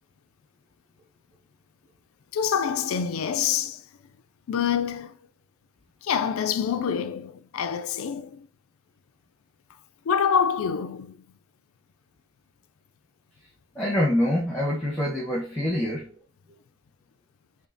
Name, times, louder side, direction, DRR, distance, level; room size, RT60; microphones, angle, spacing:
voice 1, 2.3-3.9 4.5-5.2 6.0-8.5 10.1-11.2, left 7 dB, 70° left, 0.4 m, -26 dB
voice 2, 13.7-16.2, left 1 dB, 5° left, 1.0 m, -25 dB
6.9 x 2.8 x 2.7 m
head